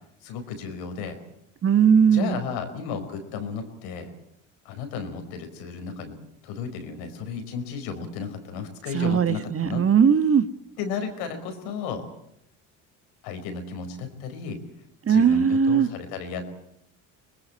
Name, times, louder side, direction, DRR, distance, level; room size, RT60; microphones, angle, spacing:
voice 1, 0.2-1.2 2.1-4.1 4.6-6.2 6.4-9.8 10.8-12.0 13.2-14.6 15.1-16.4, left 6 dB, 80° left, 7 dB, 5.0 m, -33 dB
voice 2, 1.6-2.4 8.9-10.5 15.0-15.9, right 7 dB, 35° right, 12 dB, 1.5 m, -19 dB
25.0 x 20.5 x 8.6 m, 0.76 s
supercardioid pair, 80°, 39 cm